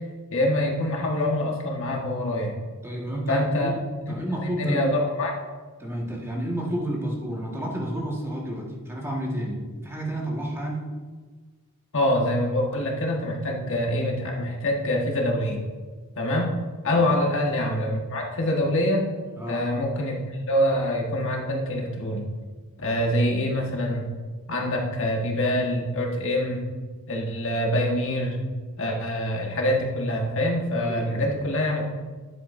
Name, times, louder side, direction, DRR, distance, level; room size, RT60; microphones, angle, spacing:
voice 1, 0.3-2.5 3.3-3.7 4.4-5.3 11.9-15.6 16.2-16.5 16.8-19.0 19.5-22.2 22.8-24.1 24.5-26.6 27.1-28.4 28.8-32.0, left 1 dB, 65° left, 0 dB, 1.4 m, -25 dB
voice 2, 2.8-3.7 4.1-4.8 5.8-10.8 16.9-17.2 19.4-19.6 30.8-31.4, right 1 dB, 10° right, -3 dB, 1.6 m, -30 dB
10.0 x 8.3 x 2.6 m, 1.4 s
head